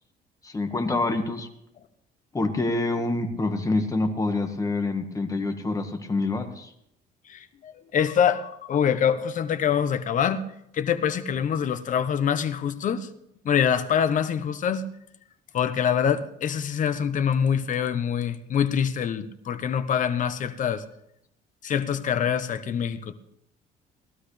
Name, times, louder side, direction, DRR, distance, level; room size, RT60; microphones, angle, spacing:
voice 1, 0.4-1.5 2.3-6.7, left 2 dB, 20° left, 1.7 m, -26 dB
voice 2, 7.3-10.4 10.7-13.1 13.4-14.9 15.5-20.8 21.6-23.1, left 8 dB, 50° left, 1.0 m, -25 dB
18.5 x 12.5 x 3.4 m
cardioid pair, 110°, 17 cm